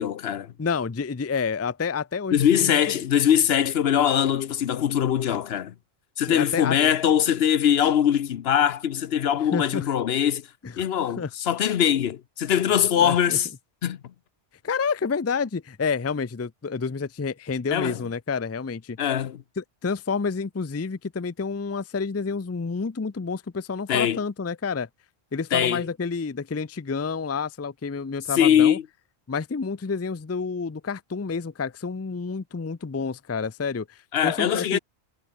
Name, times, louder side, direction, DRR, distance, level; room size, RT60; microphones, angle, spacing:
voice 1, 0.0-0.5 2.3-5.7 6.2-10.5 10.8-13.5 13.8-14.0 17.7-18.0 19.0-19.4 23.9-24.2 25.5-25.8 28.4-28.8 34.1-34.8, left 9 dB, 70° left, 1.0 m, -22 dB
voice 2, 0.6-2.8 6.3-6.8 9.5-9.9 10.6-10.7 11.2-11.3 13.0-13.4 14.6-19.0 19.6-24.9 25.3-28.8 29.3-34.8, left 5 dB, 20° left, 0.4 m, -29 dB
omnidirectional pair, 1.1 m